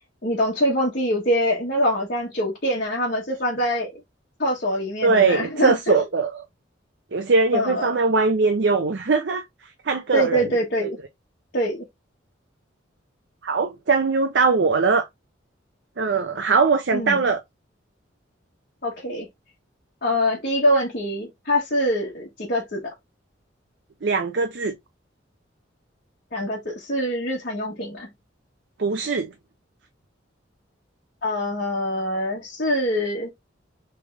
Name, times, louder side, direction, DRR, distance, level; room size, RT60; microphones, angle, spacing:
voice 1, 0.2-3.9 4.4-6.0 7.5-8.0 10.1-11.0 11.5-11.8 16.9-17.2 18.8-19.3 20.0-22.9 26.3-28.1 31.2-33.3, equal, 50° left, 1.3 m, -24 dB
voice 2, 5.0-6.4 7.1-9.4 9.8-10.4 10.8-10.9 13.4-15.1 16.0-17.4 24.0-24.7 28.8-29.3, right 4 dB, 60° right, 0.5 m, -21 dB
3.7 x 3.4 x 3.3 m
head